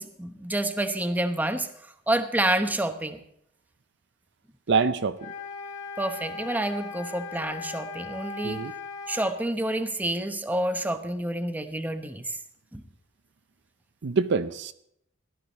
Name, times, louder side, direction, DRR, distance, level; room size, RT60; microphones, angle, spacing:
voice 1, 0.0-1.7 2.1-3.2 6.0-8.6 9.1-12.4 12.7-12.8, right 1 dB, 10° right, 8 dB, 0.9 m, -28 dB
voice 2, 4.7-5.3 8.4-8.7 14.0-14.7, right 5 dB, 60° right, 11 dB, 0.6 m, -25 dB
sound 1, 5.2-9.4, left 4 dB, 40° left, 3.3 m, -38 dB
16.5 x 12.0 x 4.1 m, 0.74 s
head